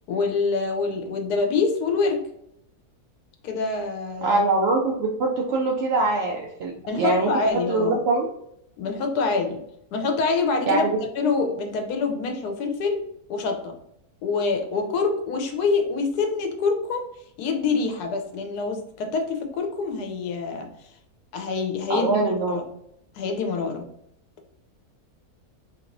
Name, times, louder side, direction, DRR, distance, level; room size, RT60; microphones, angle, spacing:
voice 1, 0.1-2.2 3.4-4.4 6.9-8.0 8.8-9.6 9.9-10.9 11.2-13.0 13.3-13.8 14.2-17.1 17.4-20.7 21.3-22.6 23.1-23.9, left 4 dB, 80° left, 5 dB, 1.2 m, -25 dB
voice 2, 4.2-8.3 10.7-11.0 21.9-22.6, right 3 dB, 75° right, -1 dB, 0.5 m, -23 dB
3.2 x 2.9 x 2.6 m, 0.75 s
omnidirectional pair, 1.6 m